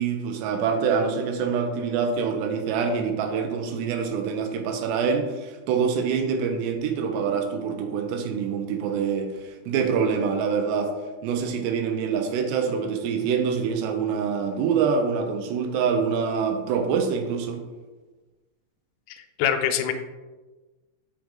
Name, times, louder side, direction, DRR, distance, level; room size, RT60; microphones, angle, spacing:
voice 1, 0.0-9.3 9.7-10.9 11.2-17.6, right 6 dB, 90° right, 5 dB, 2.9 m, -25 dB
voice 2, 19.1-19.9, left 9 dB, 90° left, 7 dB, 2.7 m, -25 dB
7.7 x 5.2 x 3.7 m, 1.2 s
omnidirectional pair, 4.7 m